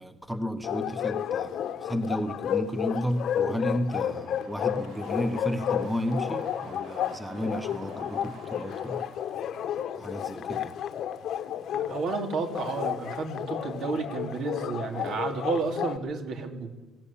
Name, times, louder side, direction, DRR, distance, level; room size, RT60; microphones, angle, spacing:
voice 1, 0.0-9.0 10.0-10.8, equal, 5° right, 8 dB, 1.2 m, -32 dB
Bark, 0.6-16.0, left 9 dB, 60° left, 1.1 m, -32 dB
sound 1, 3.0-10.1, right 4 dB, 90° right, 5.0 m, -50 dB
voice 2, 11.7-16.7, right 4 dB, 60° right, 4 dB, 3.2 m, -31 dB
20.0 x 17.0 x 8.7 m, 1.2 s
cardioid pair, 135°, 0 cm